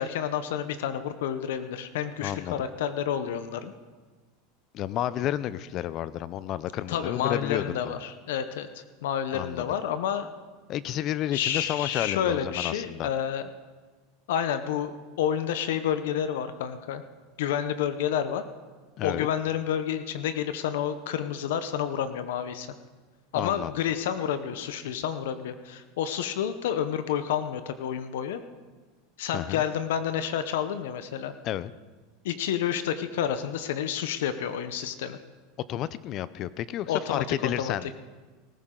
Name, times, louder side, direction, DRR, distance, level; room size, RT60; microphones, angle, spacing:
voice 1, 0.0-3.7 6.9-10.3 11.3-13.5 14.3-17.0 17.4-18.4 19.0-22.7 23.3-28.4 29.2-31.3 32.2-35.2 36.9-37.7, left 9 dB, 80° left, 11 dB, 0.8 m, -29 dB
voice 2, 2.2-2.6 4.7-7.9 9.3-9.8 10.7-13.1 19.0-19.3 23.3-23.7 29.3-29.6 31.4-31.7 35.7-37.9, left 12 dB, 35° left, 17 dB, 0.5 m, -31 dB
19.0 x 15.0 x 3.8 m, 1.3 s
supercardioid pair, 155°, 0 cm